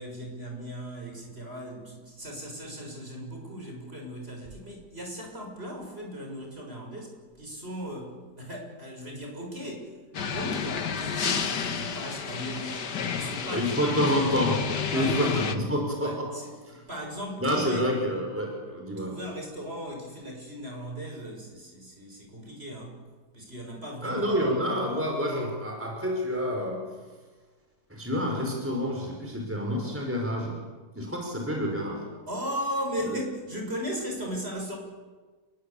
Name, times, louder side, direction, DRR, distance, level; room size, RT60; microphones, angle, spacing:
voice 1, 0.0-12.8 13.1-14.1 14.9-15.4 16.0-17.9 19.0-23.0 23.3-24.3 32.3-34.8, equal, 35° right, 1 dB, 7.1 m, -37 dB
sound 1, 10.1-15.6, left 6 dB, 85° left, 2.1 m, -31 dB
voice 2, 13.5-16.3 16.7-16.8 17.4-19.2 24.0-27.0 27.9-30.7 31.0-32.1 33.0-33.2, equal, 5° right, 1 dB, 5.1 m, -28 dB
28.5 x 23.0 x 8.6 m, 1.3 s
omnidirectional pair, 1.7 m